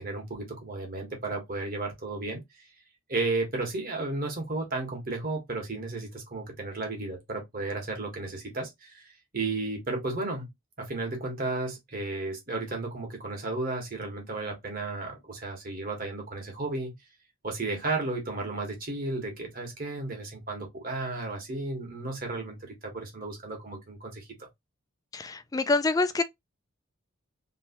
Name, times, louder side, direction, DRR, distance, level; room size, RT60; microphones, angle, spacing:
voice 1, 0.0-2.4 3.1-10.5 10.8-16.9 17.4-24.3, right 2 dB, 45° right, 1.3 m, -33 dB
voice 2, 25.1-26.2, left 3 dB, 15° left, 0.3 m, -26 dB
3.1 x 3.1 x 2.9 m
head